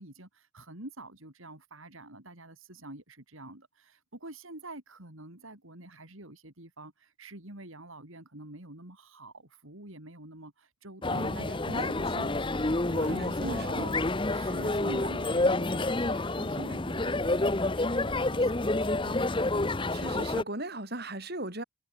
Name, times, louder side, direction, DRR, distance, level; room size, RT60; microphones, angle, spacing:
voice 1, 0.0-12.1 12.3-12.5 12.9-13.9 14.3-19.3, right 2 dB, 70° right, 4.3 m, -46 dB
sound 1, 11.0-20.4, left 2 dB, 25° left, 0.8 m, -29 dB
voice 2, 11.1-12.4 13.0-14.0 19.9-21.6, right 1 dB, 45° right, 6.6 m, -38 dB
head